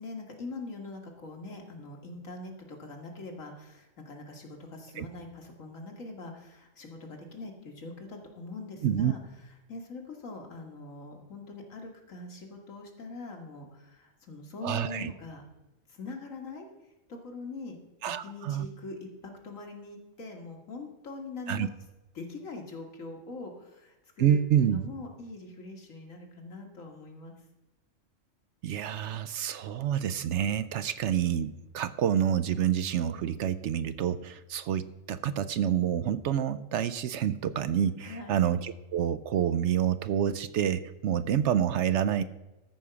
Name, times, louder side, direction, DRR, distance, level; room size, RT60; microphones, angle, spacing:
voice 1, 0.0-9.2 9.7-15.4 15.9-16.7 17.1-17.8 18.2-21.7 22.1-27.3 38.0-38.3, left 3 dB, 80° left, 2 dB, 2.1 m, -43 dB
voice 2, 8.8-9.1 14.6-15.1 18.0-18.7 21.5-21.7 24.2-24.8 28.6-42.2, right 9 dB, 70° right, 13 dB, 0.8 m, -28 dB
13.5 x 5.0 x 6.8 m, 1.0 s
omnidirectional pair, 1.3 m